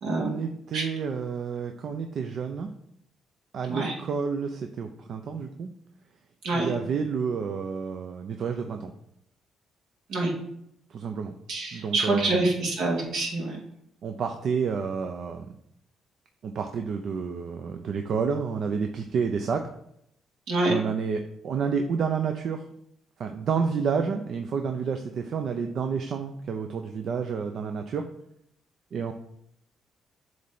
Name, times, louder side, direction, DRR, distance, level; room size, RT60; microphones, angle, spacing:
voice 1, 0.2-2.7 3.5-5.7 6.5-8.9 10.9-11.4 11.7-12.4 14.0-15.5 16.4-19.7 20.7-22.6 23.2-28.1 28.9-29.1, right 6 dB, 65° right, 5 dB, 0.6 m, -30 dB
voice 2, 11.5-13.6 20.5-20.7, right 2 dB, 80° right, -2 dB, 2.3 m, -26 dB
7.9 x 3.3 x 5.5 m, 0.75 s
cardioid pair, 90°, 0 cm